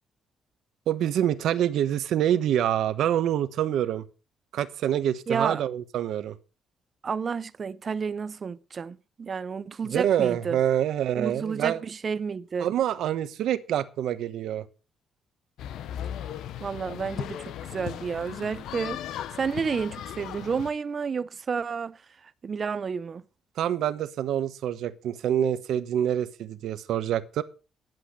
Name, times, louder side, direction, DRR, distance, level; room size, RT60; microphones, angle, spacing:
voice 1, 0.9-4.0 4.5-6.3 9.8-11.8 12.6-14.6 23.6-27.4, right 10 dB, 75° right, 1.1 m, -26 dB
voice 2, 5.3-5.6 7.0-10.6 11.2-12.7 16.6-19.0 19.4-22.0 22.4-23.2, right 5 dB, 35° right, 0.6 m, -30 dB
sound 1, 15.6-20.7, left 10 dB, 80° left, 0.7 m, -37 dB
10.5 x 7.9 x 6.6 m
cardioid pair, 150°, 0 cm